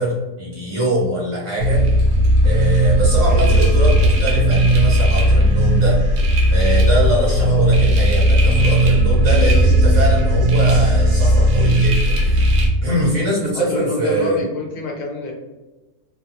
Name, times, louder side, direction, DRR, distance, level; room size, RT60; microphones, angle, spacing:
voice 1, 0.0-1.8 2.4-6.0 6.5-12.4 12.8-14.4, right 1 dB, 60° right, -6 dB, 1.4 m, -23 dB
sound 1, 1.6-12.7, right 1 dB, 80° right, 1.1 m, -15 dB
voice 2, 3.2-3.7 7.4-7.7 13.5-15.3, left 2 dB, 70° left, 0 dB, 0.9 m, -27 dB
2.8 x 2.2 x 2.6 m, 1.1 s
omnidirectional pair, 1.5 m